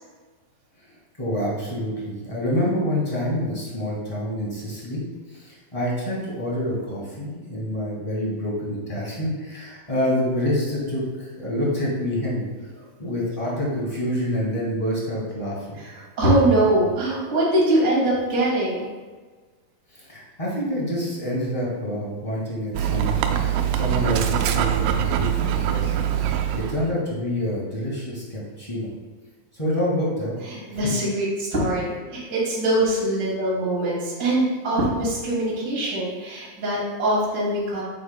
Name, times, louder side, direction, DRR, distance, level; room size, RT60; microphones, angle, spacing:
voice 1, 1.2-5.0 5.3-12.4 13.0-15.8 19.9-25.9 26.3-28.9 29.5-30.3 30.8-30.9, equal, 20° left, -5 dB, 0.9 m, -27 dB
voice 2, 15.8-18.9 30.5-37.8, right 1 dB, 25° right, -6 dB, 2.2 m, -23 dB
Dog, 22.7-26.9, right 10 dB, 85° right, 2.3 m, -23 dB
8.6 x 7.5 x 2.2 m, 1.4 s
omnidirectional pair, 4.0 m